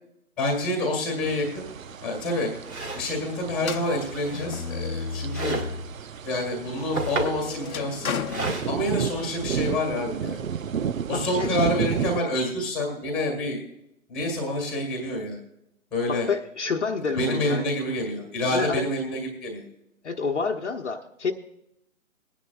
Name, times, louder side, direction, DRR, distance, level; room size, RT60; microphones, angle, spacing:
voice 1, 0.4-1.7 2.0-2.5 2.9-5.6 6.2-8.2 8.7-10.4 11.1-13.6 14.1-15.4 15.9-16.3 17.1-19.6, left 1 dB, ahead, 0 dB, 1.6 m, -27 dB
sound 1, 1.2-12.2, right 7 dB, 65° right, 0.7 m, -33 dB
sound 2, 1.9-2.0 2.6-3.1 4.0-4.7 5.3-5.8 6.6-7.4 8.3-8.7, right 2 dB, 85° right, 3.8 m, -31 dB
sound 3, 3.6-6.0 6.4-9.3, left 5 dB, 80° left, 0.9 m, -34 dB
voice 2, 11.1-11.6 16.1-17.6 18.5-18.8 20.0-21.3, left 5 dB, 55° left, 3 dB, 1.0 m, -28 dB
21.5 x 10.0 x 2.4 m, 0.82 s
hypercardioid pair, 165°, 43 cm